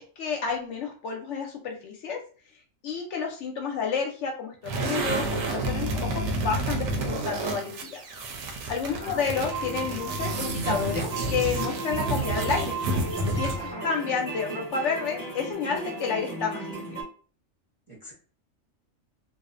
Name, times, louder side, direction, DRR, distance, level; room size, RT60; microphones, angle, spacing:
voice 1, 0.0-2.2 2.8-8.0 8.7-12.8 13.3-17.1, left 5 dB, 70° left, 2 dB, 0.8 m, -30 dB
sound 1, 4.6-13.7, right 2 dB, 80° right, 1.0 m, -30 dB
voice 2, 8.9-9.5 13.5-13.8 17.9-18.1, right 1 dB, 35° right, -5 dB, 0.5 m, -42 dB
sound 2, 9.3-17.0, right 3 dB, 10° left, 0.8 m, -35 dB
2.6 x 2.0 x 2.4 m, 0.40 s
omnidirectional pair, 1.4 m